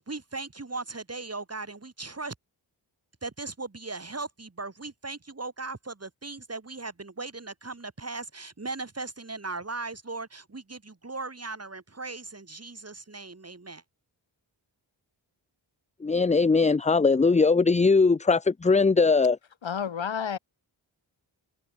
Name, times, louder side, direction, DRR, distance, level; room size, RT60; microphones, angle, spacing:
voice 1, 0.0-2.3 3.2-13.8, right 3 dB, 30° right, 2.5 m, -38 dB
voice 2, 16.0-19.4, left 4 dB, 15° left, 0.5 m, -20 dB
voice 3, 19.6-20.4, left 7 dB, 70° left, 1.6 m, -30 dB
cardioid pair, 50°, 48 cm